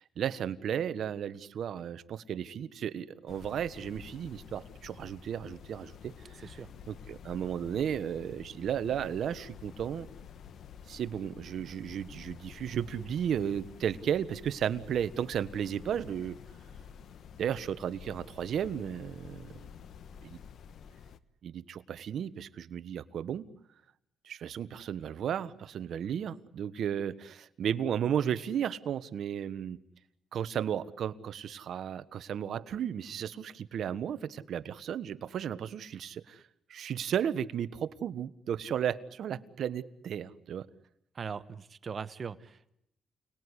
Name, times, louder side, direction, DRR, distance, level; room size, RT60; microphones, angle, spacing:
voice 1, 0.0-6.5 6.9-10.1 10.9-16.4 17.4-19.6 20.2-20.4 21.4-23.5 24.2-29.8 30.3-36.4 36.7-40.7, right 9 dB, 65° right, 15 dB, 1.2 m, -34 dB
sound 1, 3.3-21.2, left 7 dB, 65° left, 1.2 m, -50 dB
voice 2, 6.4-6.7 41.1-42.7, right 6 dB, 45° right, 14 dB, 1.2 m, -40 dB
29.5 x 20.0 x 9.9 m, 0.80 s
cardioid pair, 90°, 0 cm